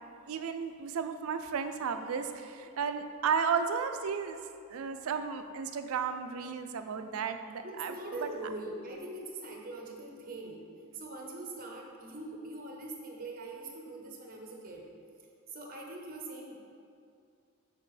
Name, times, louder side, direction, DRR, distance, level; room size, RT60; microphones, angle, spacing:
voice 1, 0.3-4.4 4.7-7.9, right 6 dB, 75° right, 8 dB, 0.4 m, -33 dB
voice 2, 7.6-10.6 10.9-14.9 15.5-16.6, right 2 dB, 40° right, 0 dB, 0.9 m, -42 dB
6.6 x 5.8 x 3.2 m, 2.3 s
head